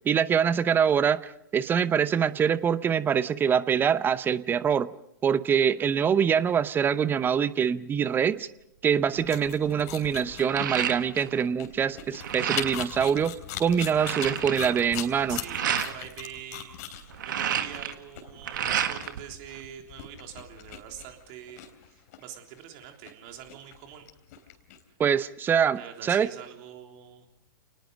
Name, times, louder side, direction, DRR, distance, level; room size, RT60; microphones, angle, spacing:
voice 1, 0.0-4.9 5.2-8.5 8.8-15.4 25.0-26.3, right 7 dB, 15° right, 17 dB, 0.7 m, -24 dB
sound 1, 9.1-24.8, left 10 dB, 50° left, 3.5 m, -40 dB
sound 2, 9.2-9.3 9.7-11.4 11.7-12.9 13.4-13.5 13.7-15.9 16.9-19.2 19.5-20.4, right 9 dB, 60° right, 1.7 m, -31 dB
voice 2, 15.3-16.9 17.2-24.1 25.7-27.3, right 10 dB, 40° right, 3 dB, 3.5 m, -44 dB
29.5 x 19.5 x 5.2 m, 0.79 s
figure-of-eight pair, 110°, 12 cm